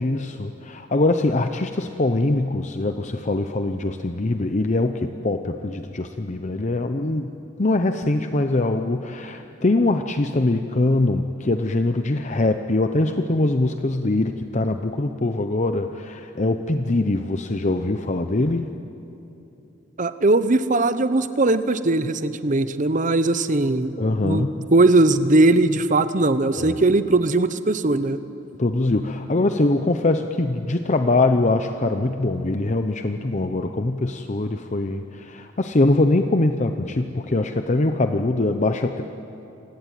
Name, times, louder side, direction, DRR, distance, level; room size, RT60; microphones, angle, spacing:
voice 1, 0.0-7.3 7.6-18.7 24.0-24.7 26.6-26.8 28.6-39.0, left 2 dB, 40° left, 7 dB, 0.8 m, -23 dB
voice 2, 20.0-24.0 24.2-28.2, right 2 dB, 40° right, 12 dB, 0.9 m, -19 dB
27.5 x 18.0 x 9.1 m, 2.9 s
head